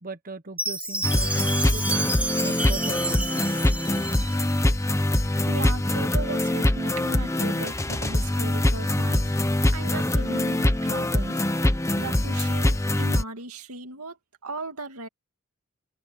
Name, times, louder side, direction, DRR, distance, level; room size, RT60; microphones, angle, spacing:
voice 1, 0.0-1.8 2.4-3.5, right 3 dB, 40° right, 1.2 m, -39 dB
Chime, 0.6-4.7, right 2 dB, 5° right, 1.3 m, -30 dB
sound 1, 1.0-13.2, left 1 dB, 15° left, 0.9 m, -23 dB
voice 2, 5.4-9.3 9.7-11.4 12.0-14.2 14.4-15.1, right 3 dB, 90° right, 2.2 m, -37 dB
open air
head